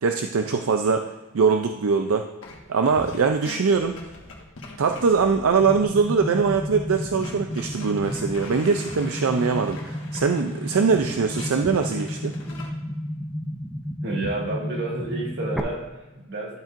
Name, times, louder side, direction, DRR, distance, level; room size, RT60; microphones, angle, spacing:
voice 1, 0.0-2.3 2.7-4.0 4.8-12.4, right 5 dB, 75° right, 5 dB, 0.4 m, -22 dB
sound 1, 2.4-2.6 2.9-12.7, left 2 dB, 60° left, 1.5 m, -42 dB
sound 2, 5.6-15.6, equal, ahead, 0.5 m, -32 dB
voice 2, 14.0-16.6, right 2 dB, 50° right, -2 dB, 1.9 m, -30 dB
12.0 x 7.3 x 2.5 m, 1.1 s
head